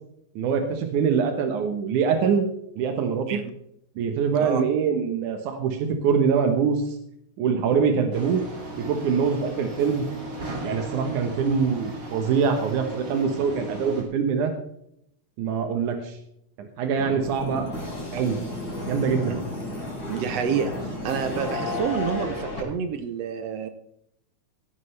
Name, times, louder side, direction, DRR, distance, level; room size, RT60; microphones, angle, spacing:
voice 1, 0.4-2.5 2.8-3.4 4.0-6.8 7.4-8.4 8.8-10.1 10.6-14.5 15.4-16.2 16.6-17.6 18.1-18.4 18.8-19.4, right 6 dB, 90° right, 5 dB, 2.6 m, -24 dB
sound 1, 8.1-14.0, right 2 dB, 30° right, 2.7 m, -37 dB
sound 2, 17.0-22.6, left 2 dB, 30° left, 4.9 m, -32 dB
voice 2, 20.1-23.7, right 7 dB, 70° right, 9 dB, 1.7 m, -28 dB
17.5 x 11.5 x 3.3 m, 0.74 s
omnidirectional pair, 3.4 m